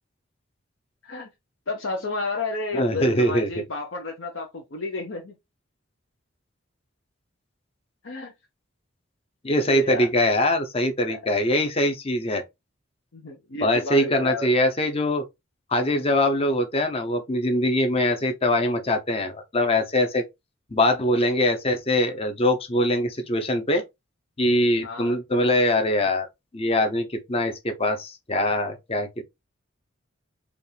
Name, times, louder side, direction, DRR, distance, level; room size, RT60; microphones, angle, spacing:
voice 1, 1.7-5.3 8.0-8.3 9.7-10.1 11.1-11.2 13.1-14.6 24.8-25.2, left 3 dB, 65° left, 0.8 m, -31 dB
voice 2, 2.7-3.5 9.4-12.4 13.6-15.2 15.7-20.2 20.7-23.8 24.4-26.3 26.5-29.1, left 1 dB, 30° left, 0.7 m, -22 dB
5.0 x 2.5 x 3.3 m
head